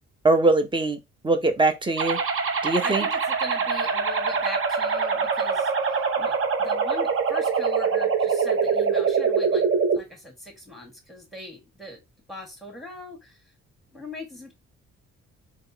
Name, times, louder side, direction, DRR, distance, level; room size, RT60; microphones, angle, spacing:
voice 1, 0.2-1.0 1.2-2.2 2.6-3.1, right 2 dB, 15° right, 0.7 m, -21 dB
sound 1, 2.0-10.0, right 5 dB, 45° right, 0.8 m, -24 dB
voice 2, 2.8-9.7 9.9-12.0 12.3-13.4 13.9-14.5, left 1 dB, ahead, 1.7 m, -40 dB
3.5 x 2.9 x 2.7 m
cardioid pair, 90°, 30 cm